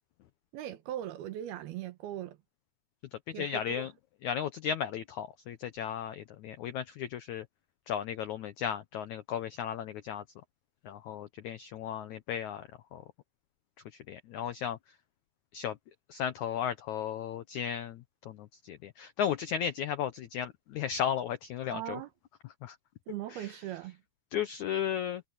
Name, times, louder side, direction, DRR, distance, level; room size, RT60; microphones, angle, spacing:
voice 1, 0.5-2.4 3.3-3.9 21.7-22.1 23.1-24.0, right 12 dB, 75° right, 3.0 m, -39 dB
voice 2, 3.4-3.9 4.2-7.4 7.9-10.2 10.9-12.6 12.9-13.0 14.1-14.8 15.5-15.7 16.1-18.0 18.3-18.4 18.6-22.0 22.6-22.7 24.3-25.2, left 9 dB, 80° left, 1.7 m, -34 dB
omnidirectional pair, 4.6 m